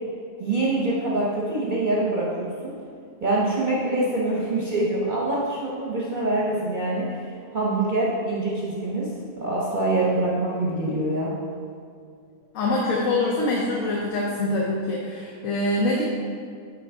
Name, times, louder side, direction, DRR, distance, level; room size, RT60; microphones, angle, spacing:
voice 1, 0.4-2.7 3.2-7.2 7.5-9.1 9.4-11.3, right 2 dB, 40° right, -5 dB, 0.8 m, -25 dB
voice 2, 12.5-16.0, left 2 dB, 70° left, -3 dB, 1.1 m, -24 dB
8.9 x 3.8 x 3.5 m, 2.3 s
omnidirectional pair, 1.5 m